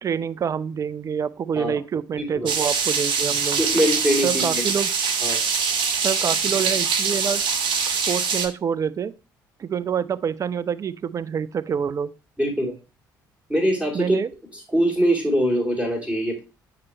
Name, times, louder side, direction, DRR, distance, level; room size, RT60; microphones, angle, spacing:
voice 1, 0.0-3.6 4.2-4.9 6.0-7.4 7.9-9.1 9.6-12.1 13.9-14.3, right 7 dB, 30° right, 0.4 m, -26 dB
voice 2, 2.2-2.5 3.6-4.6 5.2-5.4 12.4-12.7 13.5-14.2 14.7-16.4, equal, 10° right, 2.8 m, -23 dB
sound 1, 2.5-8.5, right 5 dB, 50° right, 0.9 m, -23 dB
8.5 x 3.0 x 4.3 m
figure-of-eight pair, 50°, 10 cm